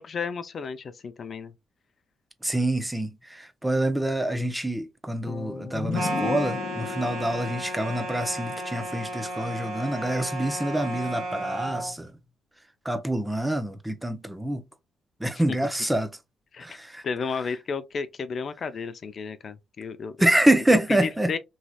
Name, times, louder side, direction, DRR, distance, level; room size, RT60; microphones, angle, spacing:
voice 1, 0.0-1.5 15.5-15.6 16.5-16.7 17.0-20.2 20.5-21.4, left 5 dB, 50° left, 0.4 m, -32 dB
voice 2, 2.4-12.1 12.9-14.6 15.2-16.2 16.6-17.0 20.2-21.3, right 1 dB, 10° right, 0.5 m, -26 dB
sound 1, 5.3-8.9, left 6 dB, 65° left, 0.8 m, -35 dB
sound 2, 5.9-11.9, right 1 dB, 80° right, 0.9 m, -33 dB
3.1 x 2.7 x 2.2 m
cardioid pair, 90°, 0 cm